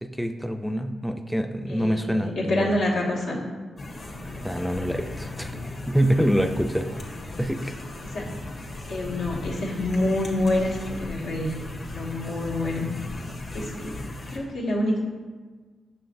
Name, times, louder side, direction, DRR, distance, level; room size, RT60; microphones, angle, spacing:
voice 1, 0.0-2.7 4.4-5.5 5.9-7.0 7.4-7.7, equal, ahead, 6 dB, 0.4 m, -26 dB
voice 2, 1.7-3.4 8.1-8.2 8.9-11.5 11.9-12.9 13.5-13.9 14.3-15.0, left 1 dB, 85° left, -4 dB, 1.3 m, -27 dB
sound 1, 3.8-14.4, left 2 dB, 55° left, 1.2 m, -36 dB
6.3 x 5.9 x 2.6 m, 1.4 s
cardioid pair, 75°, 0 cm